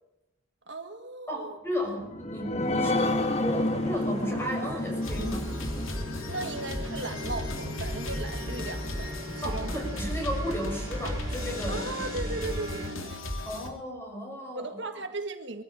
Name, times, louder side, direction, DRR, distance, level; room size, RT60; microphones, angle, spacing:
voice 1, 0.7-1.6 6.3-9.7 11.7-13.2 14.5-15.6, right 2 dB, 60° right, 7 dB, 1.7 m, -37 dB
voice 2, 1.3-3.1 3.4-5.5 9.4-11.8 13.4-14.6, equal, 10° left, 2 dB, 6.4 m, -34 dB
sound 1, 1.9-8.9 9.4-9.5 9.8-9.9, left 2 dB, 30° left, 1.6 m, -31 dB
sound 2, 2.6-12.9, equal, 20° right, 4.4 m, -40 dB
sound 3, 5.0-13.7, left 1 dB, 85° left, 3.3 m, -35 dB
22.5 x 14.5 x 9.0 m, 0.88 s
head